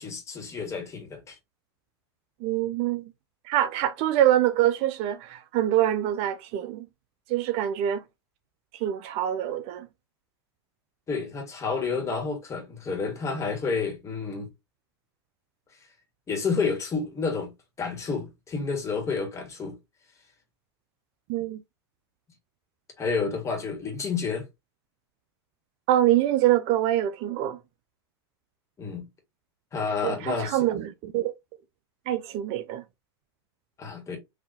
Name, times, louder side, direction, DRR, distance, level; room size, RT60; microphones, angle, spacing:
voice 1, 0.0-1.4 11.1-14.5 16.3-17.5 17.8-19.7 23.0-24.4 28.8-29.0 29.7-30.7 33.8-34.2, left 5 dB, 20° left, 1.6 m, -30 dB
voice 2, 2.4-3.0 3.5-6.9 7.3-8.0 8.7-9.9 21.3-21.6 25.9-27.6 30.0-31.3 32.1-32.8, right 12 dB, 45° right, 0.4 m, -25 dB
4.0 x 2.8 x 2.7 m
hypercardioid pair, 115°, 14 cm